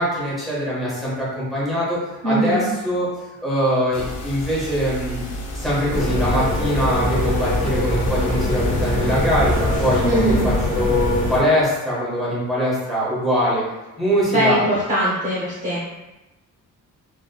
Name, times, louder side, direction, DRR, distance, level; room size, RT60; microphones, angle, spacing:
voice 1, 0.0-3.1 3.4-5.2 5.5-13.6 14.0-14.6, equal, ahead, -8 dB, 1.4 m, -22 dB
voice 2, 2.2-2.6 10.0-10.5 14.3-15.8, right 1 dB, 25° right, -7 dB, 0.7 m, -21 dB
sound 1, 3.9-9.7, equal, 55° left, 0.8 m, -32 dB
sound 2, 5.9-11.4, left 1 dB, 25° left, 0.7 m, -22 dB
5.1 x 3.3 x 2.3 m, 1.0 s
cardioid pair, 180°, 32 cm